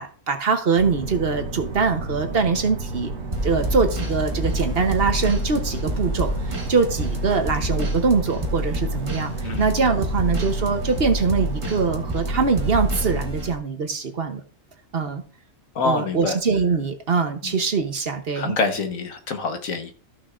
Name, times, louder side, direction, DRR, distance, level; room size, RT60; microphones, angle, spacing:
voice 1, 0.0-3.1 3.4-14.4 14.9-15.2 15.8-18.6, right 5 dB, 50° right, 7 dB, 1.1 m, -23 dB
regional train, 0.7-13.3, right 2 dB, 90° right, 1.7 m, -32 dB
sound 1, 3.3-13.5, equal, 25° right, 0.9 m, -28 dB
voice 2, 15.8-16.4 17.4-17.6 18.3-19.9, left 4 dB, 80° left, 5 dB, 1.7 m, -26 dB
14.5 x 6.2 x 2.5 m, 0.39 s
omnidirectional pair, 1.4 m